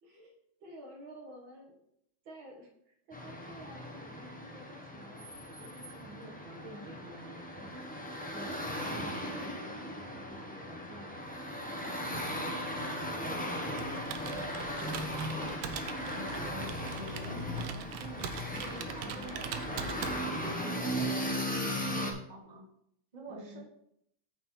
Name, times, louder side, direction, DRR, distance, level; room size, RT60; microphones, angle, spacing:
voice 1, 0.0-1.7 2.3-7.9 8.3-11.1 11.8-12.4 13.2-14.5 14.8-15.4 18.5-18.7 19.0-19.3 23.3-23.6, equal, 65° right, 1 dB, 2.2 m, -50 dB
sound 1, 3.1-22.1, equal, 10° left, 0.6 m, -37 dB
Computer keyboard, 13.7-20.6, right 8 dB, 85° right, 1.6 m, -42 dB
voice 2, 14.7-15.5 16.1-22.6 23.1-23.6, equal, 20° right, -1 dB, 1.5 m, -47 dB
9.1 x 5.5 x 4.3 m, 0.74 s
omnidirectional pair, 2.4 m